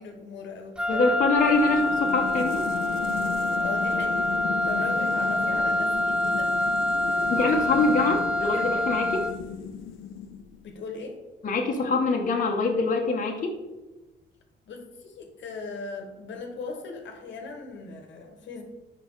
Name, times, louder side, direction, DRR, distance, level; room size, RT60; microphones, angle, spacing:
voice 1, 0.0-1.3 3.6-4.3 4.6-6.6 7.0-9.0 10.6-11.2 14.7-18.6, left 3 dB, 70° left, 4 dB, 1.2 m, -39 dB
Wind instrument woodwind instrument, 0.8-9.5, left 1 dB, 5° right, 0.4 m, -26 dB
voice 2, 0.9-2.7 7.3-9.2 11.4-13.6, left 3 dB, 40° left, 1 dB, 1.0 m, -24 dB
sound 1, 1.4-10.7, left 8 dB, 85° left, 0.6 m, -36 dB
5.5 x 5.0 x 4.5 m, 1.1 s
cardioid pair, 90°, 20 cm